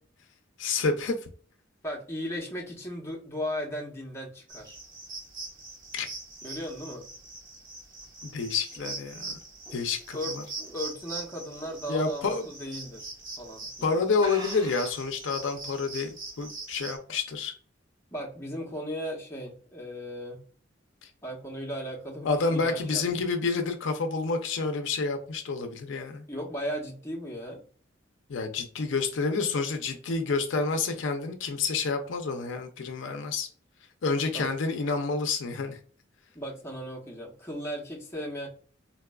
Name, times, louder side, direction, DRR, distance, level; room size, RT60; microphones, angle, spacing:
voice 1, 0.6-1.2 5.9-6.1 8.2-9.4 9.7-10.4 11.9-12.5 13.8-17.5 21.0-21.1 22.2-26.2 28.3-33.5 34.0-35.8, left 4 dB, 75° left, 0.5 m, -29 dB
voice 2, 1.8-4.8 6.4-7.1 10.1-10.4 10.7-13.1 13.4-14.0 18.1-20.4 21.2-23.2 26.3-27.6 34.3-34.5 36.3-38.5, equal, 15° left, 0.9 m, -36 dB
sound 1, 4.5-17.0, right 3 dB, 45° right, 1.0 m, -42 dB
sound 2, 8.0-11.2 11.6-11.9 12.3-12.4 13.2-13.4 13.7-13.8 14.2-15.1, equal, 20° right, 0.8 m, -44 dB
4.0 x 2.3 x 2.2 m
head